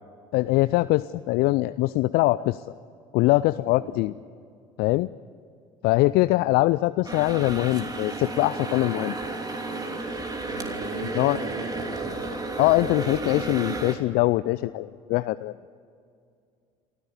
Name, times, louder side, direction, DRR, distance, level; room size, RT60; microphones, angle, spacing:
voice 1, 0.3-2.6 3.1-4.1 4.8-5.1 5.8-9.2 11.1-11.4 12.6-15.5, left 19 dB, 60° left, 15 dB, 0.5 m, -22 dB
sound 1, 7.0-13.9, right 2 dB, 20° right, 3.0 m, -32 dB
voice 2, 10.4-12.4 12.8-12.9, right 2 dB, 80° right, -4 dB, 4.2 m, -37 dB
27.5 x 14.5 x 8.4 m, 2.4 s
hypercardioid pair, 60°, 18 cm